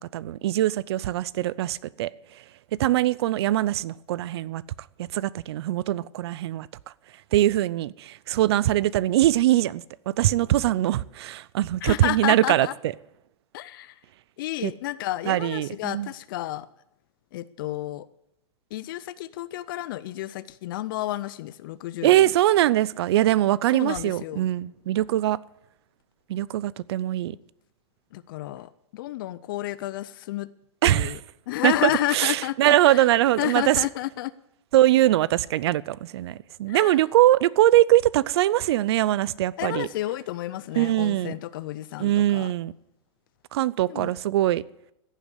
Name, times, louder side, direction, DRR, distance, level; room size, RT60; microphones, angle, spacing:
voice 1, 0.0-2.1 2.8-4.6 5.0-6.7 7.3-12.7 14.6-14.7 15.3-16.1 22.0-25.4 26.3-27.4 30.8-31.1 31.6-33.8 34.7-39.9 40.8-41.4 42.0-42.7 43.5-44.6, right 14 dB, 55° right, 0.5 m, -22 dB
voice 2, 11.8-12.7 13.5-14.0 14.4-16.7 17.3-18.1 18.7-22.3 23.7-24.4 28.1-30.5 30.8-31.2 31.5-33.1 33.4-34.3 36.7-37.0 39.6-42.5 43.9-44.1, left 15 dB, 45° left, 0.4 m, -31 dB
15.0 x 7.4 x 8.3 m
supercardioid pair, 160°, 16 cm